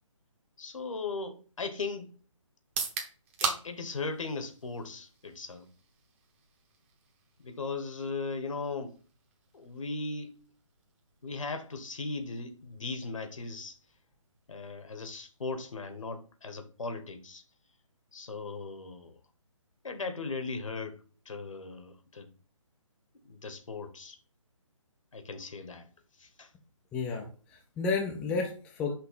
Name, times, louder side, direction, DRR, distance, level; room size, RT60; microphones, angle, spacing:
voice 1, 0.6-2.1 3.4-5.7 7.4-9.0 9.5-10.3 11.2-13.8 14.5-17.4 18.1-19.2 19.8-21.0 21.2-22.3 23.2-24.2 25.1-25.9 26.2-26.5, left 3 dB, 70° left, 1.2 m, -38 dB
sound 1, 2.6-16.5, right 6 dB, 25° right, 1.0 m, -43 dB
voice 2, 26.9-28.9, left 4 dB, 5° left, 0.4 m, -32 dB
5.8 x 3.1 x 5.7 m
figure-of-eight pair, 150°, 17 cm